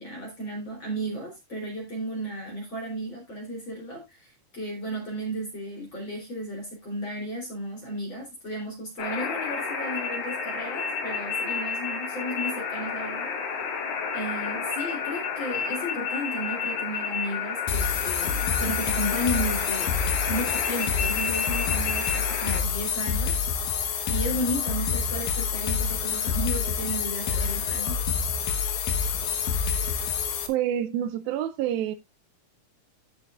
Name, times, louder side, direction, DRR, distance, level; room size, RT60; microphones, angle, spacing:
voice 1, 0.0-13.3 14.1-19.9 20.3-28.0, equal, 30° left, 3.8 m, -34 dB
sound 1, 9.0-22.6, left 5 dB, 80° left, 4.5 m, -31 dB
sound 2, 17.7-30.5, left 6 dB, 60° left, 2.2 m, -27 dB
voice 2, 30.5-32.0, right 11 dB, 80° right, 2.2 m, -27 dB
14.5 x 6.6 x 2.4 m
omnidirectional pair, 4.5 m